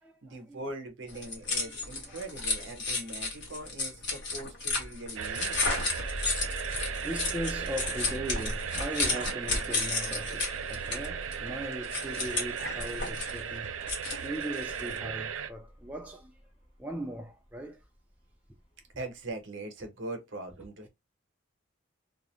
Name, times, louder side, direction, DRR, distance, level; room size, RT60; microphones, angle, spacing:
voice 1, 0.2-5.6 19.0-20.9, right 2 dB, 65° right, 0.8 m, -41 dB
sound 1, 1.1-15.0, left 3 dB, 55° left, 1.0 m, -33 dB
sound 2, 5.2-15.5, right 8 dB, 80° right, 0.4 m, -37 dB
sound 3, 5.9-17.8 18.6-18.7 19.1-19.2, equal, 30° left, 1.0 m, -45 dB
voice 2, 7.0-16.4 16.8-17.8, equal, 5° right, 0.3 m, -39 dB
2.4 x 2.0 x 2.9 m
head